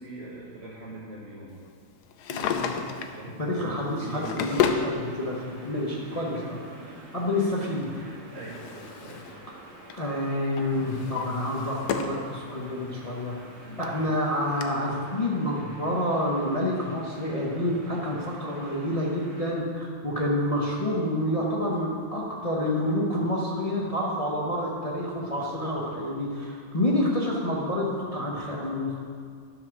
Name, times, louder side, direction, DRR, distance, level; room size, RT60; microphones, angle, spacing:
voice 1, 0.0-1.5 2.9-4.4 5.6-9.3 10.7-11.1 13.6-14.0, right 1 dB, 35° right, -9 dB, 1.6 m, -44 dB
Drawer open or close, 2.1-3.2 3.9-4.9 6.0-6.1 7.8-9.4 9.7-10.1 10.6-12.2 12.7-12.8 13.5-13.6 13.8-13.9 14.6-14.7, left 7 dB, 70° left, 1.0 m, -31 dB
voice 2, 2.3-2.7 3.4-6.6 7.1-7.9 9.9-13.4 13.8-28.9, left 1 dB, 30° left, -4 dB, 0.6 m, -28 dB
sound 1, 5.0-19.5, right 2 dB, 55° right, 2.2 m, -49 dB
11.5 x 5.0 x 6.0 m, 2.1 s
omnidirectional pair, 2.2 m